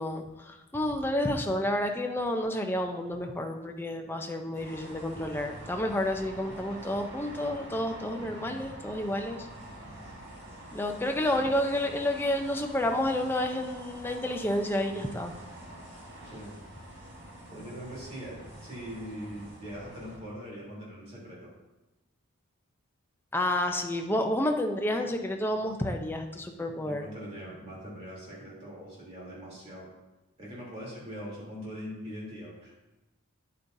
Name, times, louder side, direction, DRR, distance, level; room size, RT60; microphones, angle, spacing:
voice 1, 0.0-9.4 10.7-15.3 23.3-27.1, left 1 dB, 10° left, 3 dB, 0.6 m, -30 dB
sound 1, 4.5-20.2, right 1 dB, 50° right, 1.7 m, -46 dB
voice 2, 16.2-16.6 17.5-21.5 26.8-29.9 30.4-32.7, equal, 30° right, -5 dB, 3.1 m, -42 dB
9.7 x 8.5 x 2.7 m, 1.0 s
head